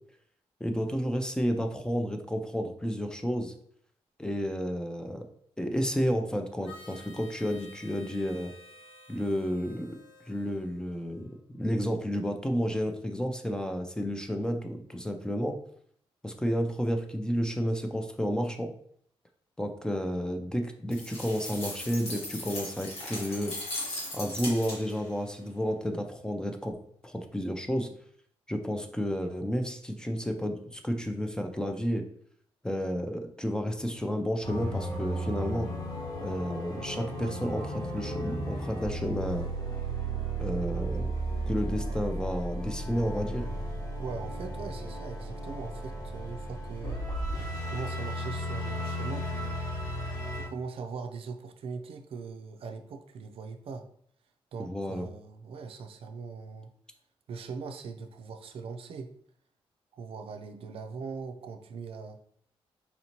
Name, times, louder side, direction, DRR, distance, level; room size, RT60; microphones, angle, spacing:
voice 1, 0.6-3.5 4.2-5.2 5.6-8.5 9.1-10.0 10.3-11.3 11.6-15.6 16.2-18.7 19.6-23.6 24.1-26.8 27.0-27.9 28.5-32.1 32.6-35.7 36.2-39.5 40.4-41.1 41.5-43.5 54.6-55.1, equal, 5° left, 5 dB, 0.5 m, -31 dB
Harmonica, 6.6-11.4, left 2 dB, 55° left, 0.8 m, -52 dB
sound 1, 20.9-25.1, left 1 dB, 75° left, 1.5 m, -38 dB
sound 2, 34.4-50.5, right 1 dB, 40° left, 1.2 m, -34 dB
voice 2, 44.0-47.0 47.7-49.6 50.3-53.9 54.5-56.7 57.3-59.1 59.9-62.2, right 5 dB, 65° right, 6 dB, 0.4 m, -40 dB
4.2 x 2.7 x 2.9 m, 0.63 s
cardioid pair, 85°, 10 cm